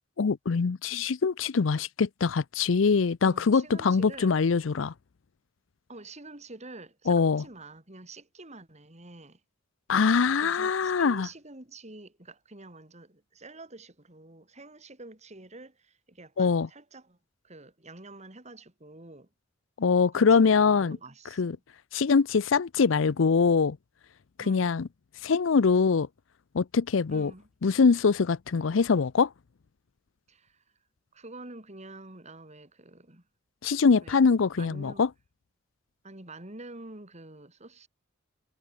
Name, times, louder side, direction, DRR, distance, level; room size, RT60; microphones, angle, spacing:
voice 1, 0.2-4.9 7.1-7.4 9.9-11.3 16.4-16.7 19.8-21.0 21.4-21.6 21.9-23.8 24.4-24.9 25.2-26.1 26.5-27.3 27.6-29.3 33.6-35.1, left 5 dB, 75° left, 0.5 m, -23 dB
voice 2, 3.2-4.4 5.9-9.4 10.4-17.2 17.4-19.3 20.1-21.6 24.4-24.8 27.1-27.5 30.3-30.6 31.1-33.2 34.0-34.2 34.5-35.0 36.0-37.9, right 2 dB, 35° right, 3.8 m, -47 dB
head